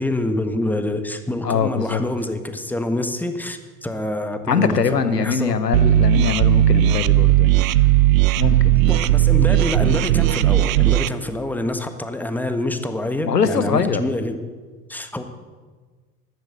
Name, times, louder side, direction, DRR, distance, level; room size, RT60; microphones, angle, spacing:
voice 1, 0.0-5.6 8.9-14.4 14.9-15.2, left 1 dB, 5° left, 8 dB, 1.5 m, -26 dB
voice 2, 1.4-2.0 4.5-7.8 8.4-8.8 13.2-14.0, left 6 dB, 85° left, 13 dB, 1.0 m, -22 dB
sound 1, 5.7-11.1, right 13 dB, 60° right, 0.7 m, -16 dB
14.0 x 12.0 x 7.9 m, 1.4 s
figure-of-eight pair, 75°, 47 cm